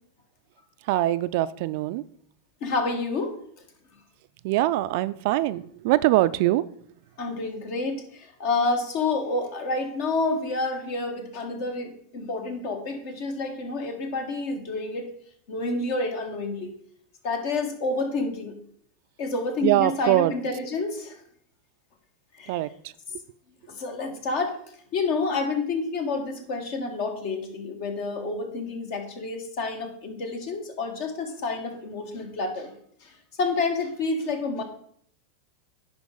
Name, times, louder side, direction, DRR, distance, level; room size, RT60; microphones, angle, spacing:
voice 1, 0.8-2.0 4.4-6.7 19.6-20.3 22.5-22.9, right 16 dB, 55° right, 15 dB, 0.3 m, -23 dB
voice 2, 2.6-3.4 7.2-15.1 15.5-16.7 17.2-18.6 19.2-21.2 22.4-22.5 23.7-24.6 24.9-32.7 33.0-33.1 33.4-34.6, left 3 dB, 55° left, 5 dB, 1.6 m, -29 dB
10.5 x 4.6 x 3.9 m, 0.64 s
hypercardioid pair, 90°, 0 cm